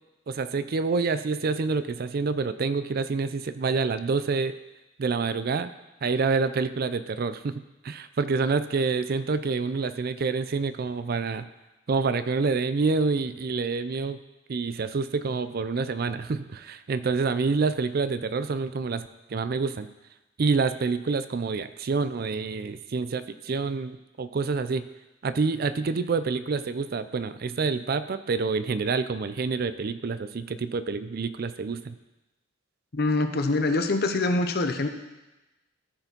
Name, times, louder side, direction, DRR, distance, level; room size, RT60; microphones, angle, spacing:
voice 1, 0.3-4.5 5.0-5.7 6.0-11.5 11.9-14.2 14.5-19.9 20.4-24.9 25.2-32.0, right 4 dB, 50° right, 13 dB, 0.4 m, -27 dB
voice 2, 32.9-34.9, left 2 dB, 55° left, 7 dB, 0.8 m, -24 dB
14.0 x 5.0 x 5.3 m, 1.0 s
head